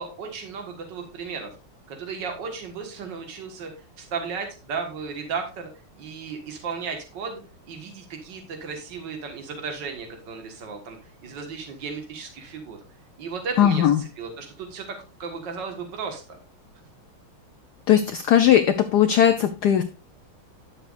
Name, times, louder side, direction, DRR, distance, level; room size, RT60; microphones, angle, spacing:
voice 1, 0.0-1.5 1.9-5.7 6.0-7.4 7.7-11.0 11.2-12.8 13.2-14.8 15.2-16.2, right 5 dB, 60° right, 4 dB, 2.2 m, -34 dB
voice 2, 13.6-14.0 17.9-19.8, left 10 dB, 75° left, 9 dB, 0.9 m, -18 dB
11.5 x 6.9 x 2.5 m, 0.32 s
omnidirectional pair, 2.3 m